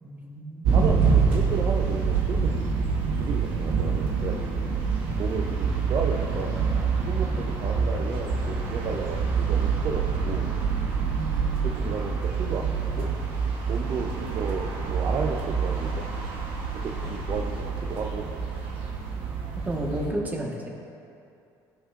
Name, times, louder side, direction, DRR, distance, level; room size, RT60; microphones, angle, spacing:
voice 1, 0.0-0.7 7.3-7.6 11.2-11.8 19.6-20.7, right 1 dB, 20° right, -1 dB, 1.3 m, -33 dB
sound 1, 0.6-20.1, right 5 dB, 80° right, 1.1 m, -26 dB
voice 2, 0.7-2.7 3.1-4.7 5.2-6.6 7.1-10.5 11.6-13.1 13.7-16.1 16.7-18.3, right 5 dB, 50° right, 0 dB, 0.6 m, -33 dB
15.5 x 5.4 x 2.5 m, 2.6 s
supercardioid pair, 90°, 9 cm